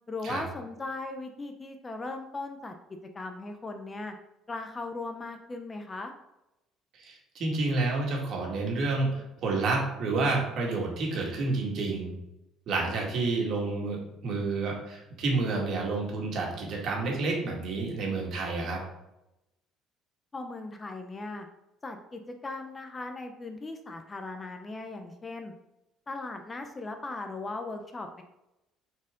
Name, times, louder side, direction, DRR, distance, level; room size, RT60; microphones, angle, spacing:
voice 1, 0.1-2.7 3.1-4.1 4.5-6.1 20.3-21.5 21.8-25.5 26.1-28.2, left 2 dB, 20° left, 5 dB, 0.6 m, -38 dB
voice 2, 6.9-12.1 12.7-18.8, right 3 dB, 50° right, -1 dB, 1.9 m, -29 dB
7.1 x 4.5 x 3.7 m, 0.92 s
cardioid pair, 145°, 0 cm